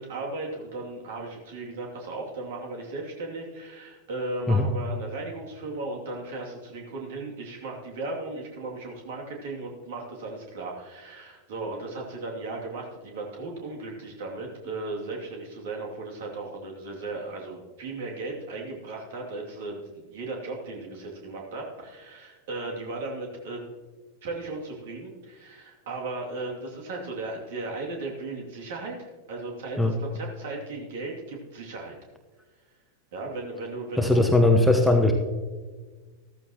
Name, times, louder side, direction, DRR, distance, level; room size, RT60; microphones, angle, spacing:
voice 1, 0.0-23.6 24.2-32.0 33.1-34.2, right 2 dB, 55° right, -1 dB, 2.6 m, -36 dB
voice 2, 34.0-35.1, left 2 dB, ahead, 3 dB, 1.1 m, -19 dB
14.0 x 14.0 x 3.0 m, 1.4 s
figure-of-eight pair, 90°, 0 cm